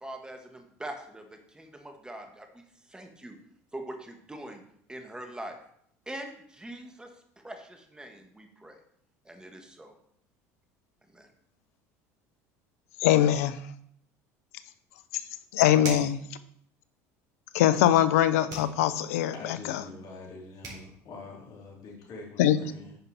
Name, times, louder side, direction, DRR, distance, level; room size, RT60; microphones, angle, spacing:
voice 1, 0.0-2.6 2.9-3.4 3.7-4.6 4.9-5.6 6.1-7.1 7.4-8.8 9.3-9.9 11.1-11.3, right 1 dB, 10° right, 4 dB, 1.6 m, -42 dB
voice 2, 13.0-13.6 15.5-16.2 17.5-19.3 22.4-22.6, left 11 dB, 80° left, 14 dB, 0.6 m, -22 dB
sound 1, 15.8-16.2 18.5-18.8 20.3-20.4 20.6-20.9, right 3 dB, 55° right, 4.0 m, -38 dB
voice 3, 19.3-23.0, left 3 dB, 55° left, -2 dB, 3.3 m, -45 dB
9.7 x 5.4 x 4.2 m, 0.68 s
hypercardioid pair, 80°, 8 cm